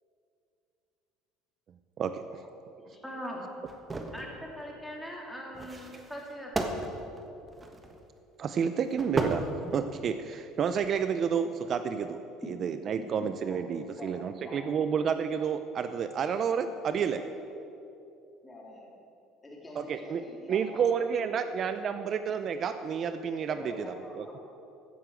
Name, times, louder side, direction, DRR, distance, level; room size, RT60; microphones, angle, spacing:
voice 1, 2.0-2.4 8.4-9.5 9.7-12.2 12.5-17.2 19.8-20.2 20.5-23.7 24.2-24.3, right 7 dB, 45° right, 10 dB, 0.5 m, -30 dB
voice 2, 3.0-3.4 4.1-6.5, equal, ahead, -2 dB, 3.0 m, -40 dB
sound 1, 3.7-4.3 5.5-8.0 8.9-10.1 10.6-10.9, right 2 dB, 20° right, 1.3 m, -35 dB
voice 3, 13.5-14.6 16.6-17.4 18.4-19.0 19.4-21.0 21.4-21.5 23.5-24.4, left 1 dB, 20° left, -2 dB, 3.5 m, -46 dB
15.0 x 6.8 x 8.0 m, 2.8 s
supercardioid pair, 110°, 0 cm